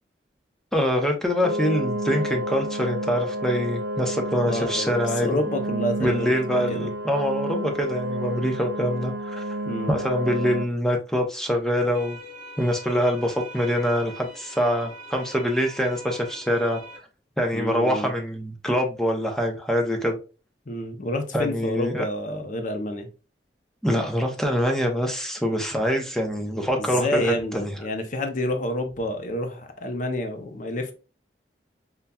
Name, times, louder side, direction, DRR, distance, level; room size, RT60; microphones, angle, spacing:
voice 1, 0.7-5.3 6.0-9.4 9.9-12.2 12.6-16.8 17.4-20.2 21.3-22.0 23.8-27.7, equal, 5° left, 0.6 m, -24 dB
sound 1, 1.4-10.7, right 1 dB, 65° right, 0.4 m, -30 dB
voice 2, 4.4-6.9 9.6-9.9 17.5-18.1 20.7-23.1 26.8-30.9, left 1 dB, 45° left, 0.6 m, -29 dB
sound 2, 11.9-17.0, equal, 45° right, 0.9 m, -43 dB
5.4 x 2.3 x 2.2 m
head